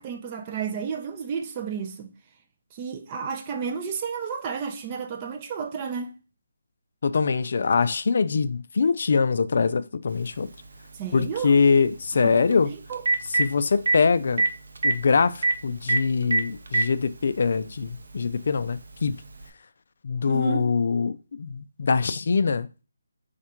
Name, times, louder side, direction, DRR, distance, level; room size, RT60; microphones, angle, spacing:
voice 1, 0.0-2.1 2.7-6.1 10.9-11.6 12.2-13.0 20.2-20.7, right 6 dB, 20° right, 0.4 m, -32 dB
voice 2, 7.0-10.5 11.1-12.7 13.3-14.4 14.8-19.2 20.0-22.7, left 5 dB, 50° left, 0.3 m, -23 dB
Telephone, 10.3-10.4 12.5-12.6 12.9-13.4 13.9-14.0 14.4-14.5 14.8-14.9 15.4-15.5 15.9-16.0 16.3-16.9 17.9-18.0 19.4-19.5, right 3 dB, 65° right, 0.6 m, -21 dB
4.3 x 2.5 x 4.3 m
hypercardioid pair, 170°, 0 cm